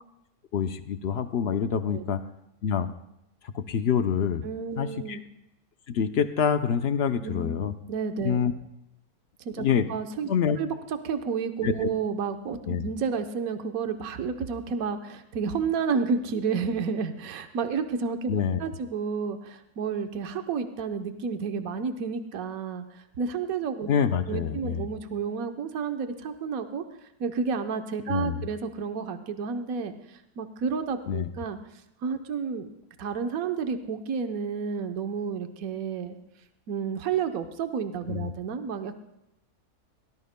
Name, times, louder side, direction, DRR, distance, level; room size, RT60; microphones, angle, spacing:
voice 1, 0.5-2.2 2.6-2.9 3.4-4.4 4.8-5.2 5.9-7.7 8.2-8.5 9.6-9.9 10.3-10.6 11.6-11.9 12.7-12.8 18.3-18.6 23.9-24.9 28.1-28.4 31.1-31.3 38.1-38.3, left 7 dB, 60° left, 9 dB, 0.7 m, -26 dB
voice 2, 4.4-5.2 7.2-7.6 7.9-8.4 9.4-10.3 10.6-10.7 11.0-23.9 24.3-26.8 27.2-29.9 30.4-31.6 32.0-32.7 33.0-36.2 36.7-39.0, right 5 dB, 65° right, 7 dB, 1.3 m, -31 dB
21.5 x 18.5 x 2.2 m, 0.85 s
omnidirectional pair, 1.7 m